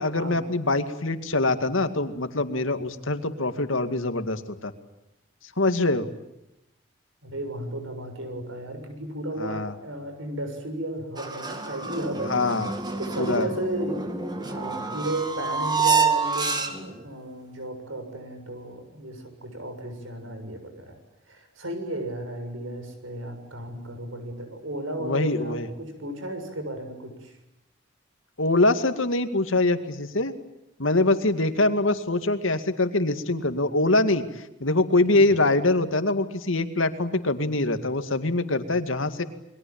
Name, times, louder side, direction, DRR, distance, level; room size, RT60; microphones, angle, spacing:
voice 1, 0.0-4.7 5.6-6.1 9.4-9.7 12.3-12.7 13.2-13.5 25.0-25.7 28.4-30.3 30.8-39.2, left 2 dB, 85° left, 9 dB, 2.2 m, -24 dB
voice 2, 7.2-12.3 13.0-20.9 21.3-27.4 35.1-35.4, right 1 dB, 90° right, 7 dB, 7.0 m, -34 dB
sound 1, 11.2-17.0, right 5 dB, 20° right, 2.3 m, -28 dB
29.0 x 22.5 x 8.8 m, 0.88 s
head